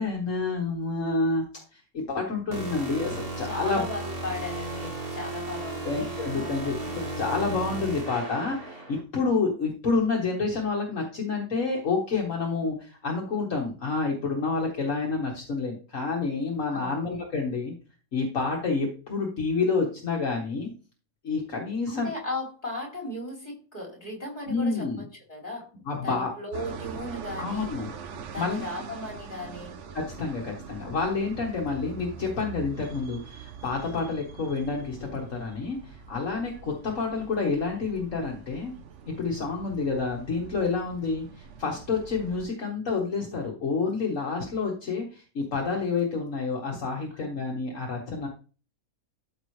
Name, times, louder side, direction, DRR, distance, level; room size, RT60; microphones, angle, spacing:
voice 1, 0.0-3.8 5.8-6.8 7.2-17.7 18.1-20.7 21.2-22.1 24.5-25.1 25.9-26.3 27.4-27.9 28.3-28.7 29.9-38.7 39.1-48.3, left 4 dB, 65° left, -1 dB, 1.8 m, -29 dB
sound 1, 2.5-9.0, right 2 dB, 40° right, 2.2 m, -35 dB
voice 2, 3.4-6.8 16.7-17.0 21.9-24.9 25.3-27.7 28.3-29.8 47.2-47.4, left 2 dB, 30° left, -2 dB, 4.0 m, -37 dB
sound 2, 26.5-42.5, right 6 dB, 60° right, 1.1 m, -43 dB
13.0 x 5.4 x 3.2 m, 0.37 s
omnidirectional pair, 1.5 m